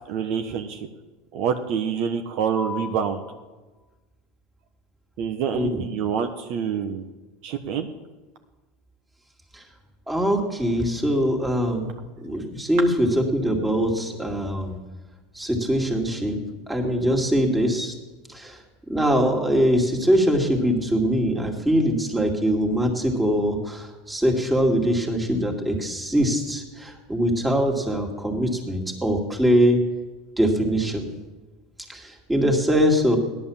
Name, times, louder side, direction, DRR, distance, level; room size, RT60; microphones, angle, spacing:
voice 1, 0.1-0.9 1.3-3.2 5.2-7.0 7.4-7.9, right 7 dB, 55° right, 6 dB, 1.2 m, -26 dB
voice 2, 2.6-2.9 5.5-5.8 9.5-9.6 10.1-14.8 15.3-16.4 16.7-17.9 18.3-18.6 18.9-29.8 30.4-31.1 31.9-33.2, equal, 10° right, 2 dB, 2.5 m, -22 dB
16.5 x 11.0 x 7.2 m, 1.2 s
supercardioid pair, 130°, 0 cm